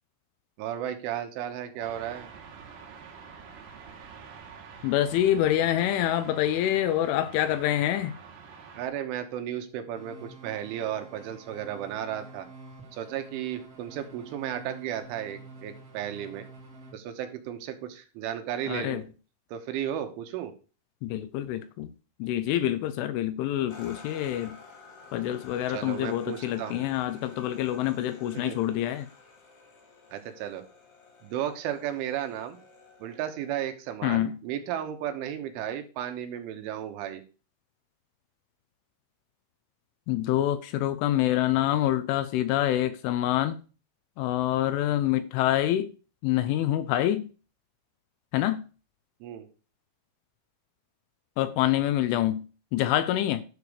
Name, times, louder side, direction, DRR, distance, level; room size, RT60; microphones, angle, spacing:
voice 1, 0.6-2.3 8.8-12.5 12.9-16.5 16.9-19.0 19.5-20.5 25.7-26.8 28.3-28.6 30.1-30.6 31.2-32.6 33.0-37.2 49.2-49.5, right 10 dB, 80° right, 3.3 m, -34 dB
sound 1, 1.8-8.9, right 6 dB, 60° right, 3.2 m, -47 dB
voice 2, 4.8-8.2 18.7-19.0 21.0-21.9 22.2-24.6 25.1-29.1 34.0-34.4 40.1-43.6 44.2-45.9 46.2-47.3 48.3-48.6 51.4-52.4 52.7-53.4, left 13 dB, 80° left, 3.0 m, -26 dB
sound 2, 9.9-16.9, right 2 dB, 45° right, 1.2 m, -48 dB
sound 3, 23.7-33.7, left 4 dB, 55° left, 1.8 m, -51 dB
12.0 x 6.8 x 4.8 m
omnidirectional pair, 6.0 m